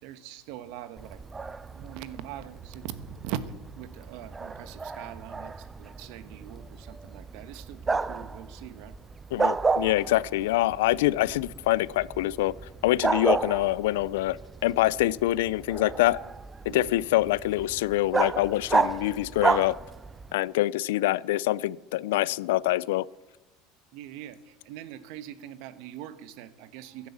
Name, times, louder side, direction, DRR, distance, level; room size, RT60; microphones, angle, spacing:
voice 1, 0.0-1.2 1.7-3.4 3.8-9.0 16.6-17.0 23.9-27.1, right 12 dB, 65° right, 14 dB, 1.2 m, -42 dB
Bark, 1.0-20.3, right 4 dB, 15° right, 0.5 m, -32 dB
voice 2, 9.3-12.6 12.8-14.4 14.6-16.2 16.7-19.8 20.3-23.1, left 16 dB, 90° left, 23 dB, 0.4 m, -25 dB
15.0 x 11.0 x 7.2 m, 1.0 s
supercardioid pair, 140°, 0 cm